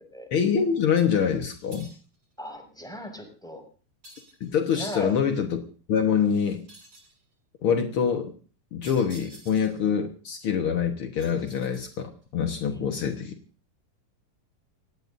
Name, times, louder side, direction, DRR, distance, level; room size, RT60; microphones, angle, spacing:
voice 1, 0.3-1.9 4.4-5.6 5.9-6.6 7.6-8.3 8.7-13.3, left 7 dB, 80° left, 5 dB, 1.2 m, -25 dB
sound 1, 1.7-2.2 4.0-4.8 6.7-7.2 8.8-9.9 11.2-12.2, right 1 dB, 25° right, 7.3 m, -50 dB
voice 2, 2.4-3.6 4.7-5.1 12.7-13.0, equal, ahead, 3 dB, 6.0 m, -38 dB
28.0 x 18.0 x 2.7 m, 0.39 s
omnidirectional pair, 4.6 m